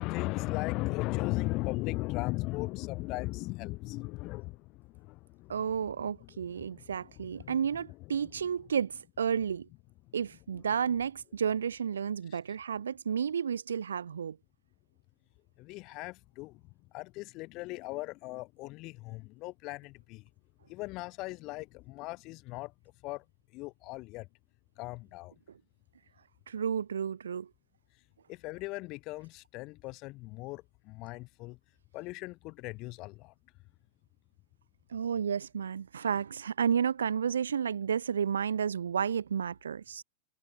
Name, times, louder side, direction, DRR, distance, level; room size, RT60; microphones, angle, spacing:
voice 1, 0.0-8.4 10.0-10.1 10.5-10.6 12.3-12.4 15.6-20.3 20.7-22.7 23.0-23.2 23.5-24.3 24.8-25.3 28.3-31.6 31.9-33.3, left 22 dB, 40° left, 2.0 m, -38 dB
voice 2, 5.5-9.7 10.1-14.4 26.5-27.5 34.9-40.0, right 7 dB, 70° right, 0.6 m, -31 dB
figure-of-eight pair, 95°, 0 cm